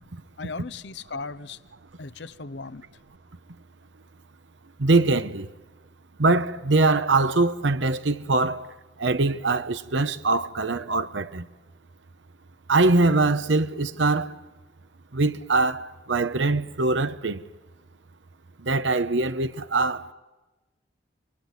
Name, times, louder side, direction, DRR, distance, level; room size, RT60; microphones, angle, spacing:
voice 1, 0.4-1.6 2.0-3.0, left 4 dB, 70° left, 0.9 m, -37 dB
voice 2, 4.8-5.5 6.2-8.7 9.0-11.5 12.7-14.3 15.1-17.4 18.6-20.1, right 3 dB, 85° right, 1.0 m, -23 dB
28.0 x 22.5 x 9.3 m
head